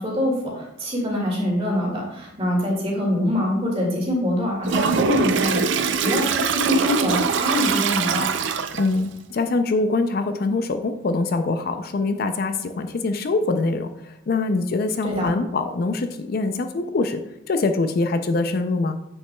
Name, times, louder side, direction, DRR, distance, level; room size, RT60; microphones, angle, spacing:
voice 1, 0.0-8.3 15.0-15.3, left 1 dB, 30° right, -2 dB, 2.0 m, -24 dB
Toilet flush, 4.7-9.0, right 5 dB, 65° right, 0.5 m, -23 dB
voice 2, 8.8-17.2 17.5-18.9, left 3 dB, 50° left, 8 dB, 0.4 m, -24 dB
7.7 x 6.1 x 2.2 m, 0.85 s
head